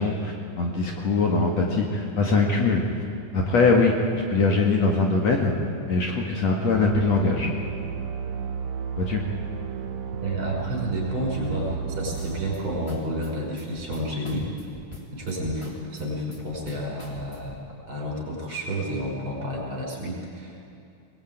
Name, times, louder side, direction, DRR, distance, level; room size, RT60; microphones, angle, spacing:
voice 1, 0.0-2.8 3.3-5.6 5.9-7.5 9.0-9.2, left 3 dB, 55° left, 0 dB, 2.8 m, -22 dB
sound 1, 6.8-14.3, right 6 dB, 60° right, 2.3 m, -33 dB
voice 2, 10.2-14.5 15.1-20.6, equal, 35° right, -2 dB, 6.4 m, -30 dB
sound 2, 12.1-17.7, left 2 dB, 10° left, 2.5 m, -44 dB
22.5 x 21.0 x 9.2 m, 2.6 s
omnidirectional pair, 4.0 m